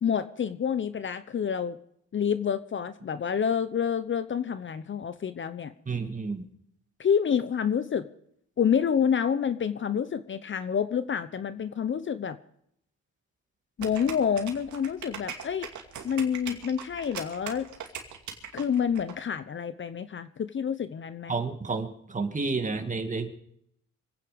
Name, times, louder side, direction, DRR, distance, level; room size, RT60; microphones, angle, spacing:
voice 1, 0.0-1.8 2.1-5.7 7.0-8.1 8.6-12.4 13.8-15.7 16.0-17.7 18.5-21.3, left 7 dB, 40° left, 13 dB, 0.8 m, -28 dB
voice 2, 5.9-6.5 21.3-23.3, right 4 dB, 25° right, 6 dB, 2.3 m, -30 dB
sound 1, 13.8-19.1, right 8 dB, 75° right, 2.5 m, -40 dB
25.5 x 9.4 x 5.2 m, 0.70 s
cardioid pair, 90°, 30 cm